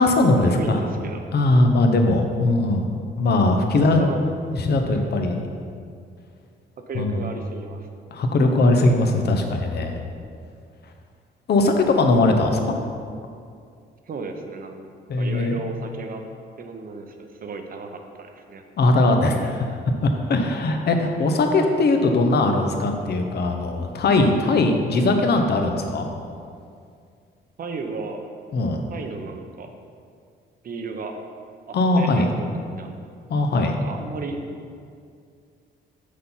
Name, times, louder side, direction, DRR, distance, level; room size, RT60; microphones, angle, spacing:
voice 1, 0.0-0.8 1.3-4.1 4.5-5.4 6.9-7.3 8.1-9.9 11.5-12.8 15.1-15.6 18.8-19.7 20.0-26.1 28.5-28.8 31.7-32.3 33.3-33.8, left 2 dB, 55° left, 4 dB, 0.8 m, -20 dB
voice 2, 0.6-1.2 3.8-4.2 6.9-7.9 14.1-14.8 15.2-16.2 16.6-18.6 27.6-28.3 28.9-29.7 30.6-31.1 31.7-32.9 33.5-34.4, right 4 dB, 45° right, 4 dB, 0.8 m, -34 dB
6.5 x 4.0 x 5.6 m, 2.3 s
cardioid pair, 90°, 20 cm